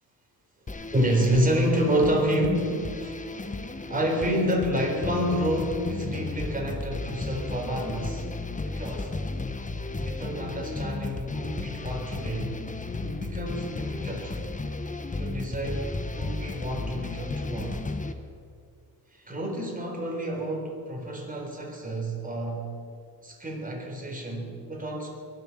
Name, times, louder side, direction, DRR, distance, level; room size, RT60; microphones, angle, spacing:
sound 1, 0.7-18.1, left 3 dB, 20° left, 1.1 m, -34 dB
voice 1, 0.9-3.6 3.9-8.3 8.7-9.1 9.9-12.5 12.9-14.3 15.2-15.9 16.2-17.8 19.1-22.8 23.2-25.1, equal, 20° right, 1 dB, 4.2 m, -29 dB
22.0 x 7.9 x 7.4 m, 2.2 s
cardioid pair, 90°, 38 cm